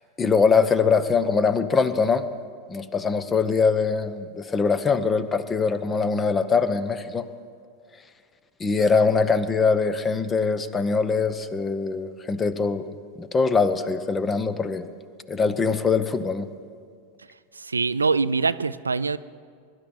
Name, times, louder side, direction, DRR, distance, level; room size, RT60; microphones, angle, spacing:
voice 1, 0.2-2.2 2.7-7.2 8.6-12.9 13.2-14.9 15.3-16.5, left 5 dB, 20° left, 13 dB, 0.8 m, -22 dB
voice 2, 17.6-19.2, right 4 dB, 85° right, 15 dB, 0.3 m, -23 dB
22.0 x 11.5 x 4.3 m, 2.1 s
figure-of-eight pair, 90°, 0 cm